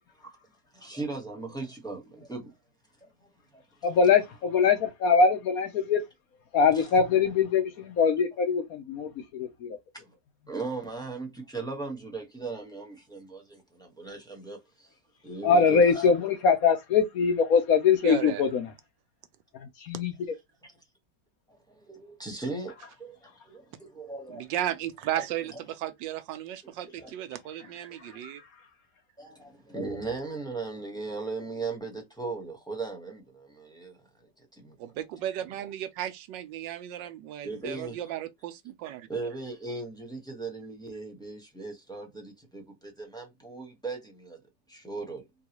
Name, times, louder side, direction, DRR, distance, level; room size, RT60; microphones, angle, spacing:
voice 1, 0.7-2.5 3.0-3.1 3.5-3.6 6.7-6.8 9.9-10.1 10.5-14.9 15.2-16.1 21.5-24.5 25.1-25.2 25.5-25.6 27.0-27.1 29.2-34.0 34.4-34.8 37.4-38.0 39.1-44.4 44.7-45.2, right 3 dB, 5° left, 0.9 m, -38 dB
voice 2, 3.8-6.0 6.5-9.8 15.4-18.7 19.8-20.1, left 5 dB, 65° left, 1.0 m, -23 dB
voice 3, 18.0-18.4 24.3-28.4 34.8-39.1, right 12 dB, 85° right, 1.3 m, -34 dB
3.9 x 2.3 x 2.9 m
omnidirectional pair, 1.9 m